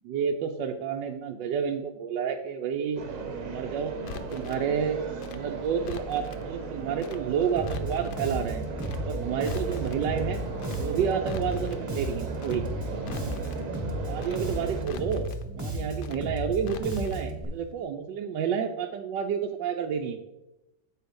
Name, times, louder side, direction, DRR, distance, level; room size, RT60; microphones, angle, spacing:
voice 1, 0.0-3.0 3.4-3.9 4.3-5.0 5.3-8.7 9.0-10.4 10.8-12.6 14.1-20.2, right 7 dB, 75° right, 3 dB, 1.2 m, -30 dB
sound 1, 3.0-14.9, right 4 dB, 50° right, 1.1 m, -36 dB
Crackle, 4.0-4.6 5.2-6.4 7.0-7.2 7.5-8.2 8.8-9.0 9.3-10.0 10.6-10.8 11.1-11.8 12.4-12.6 12.9-13.6 14.2-14.4 14.7-15.4 16.0-16.2 16.5-17.2 17.5-17.6, left 7 dB, 70° left, 1.1 m, -43 dB
Bass guitar, 7.6-17.4, right 1 dB, 10° right, 0.9 m, -34 dB
7.9 x 4.6 x 5.2 m, 0.95 s
omnidirectional pair, 2.1 m